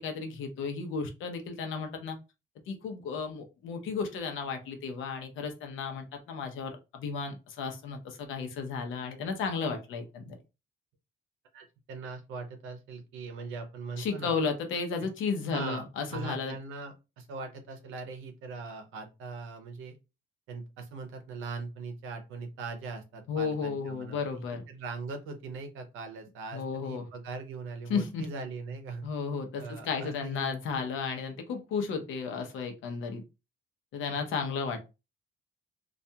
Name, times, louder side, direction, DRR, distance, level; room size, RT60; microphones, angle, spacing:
voice 1, 0.0-2.2 2.7-10.4 14.0-16.5 23.3-24.6 26.5-27.1 27.9-28.2 29.0-33.2 33.9-34.8, left 5 dB, 85° left, 5 dB, 0.7 m, -33 dB
voice 2, 11.5-14.3 15.0-15.1 15.5-15.9 16.1-20.0 20.5-24.4 24.7-29.1 29.6-30.5, right 4 dB, 90° right, 6 dB, 0.6 m, -40 dB
2.4 x 2.2 x 2.7 m, 0.27 s
cardioid pair, 90°, 20 cm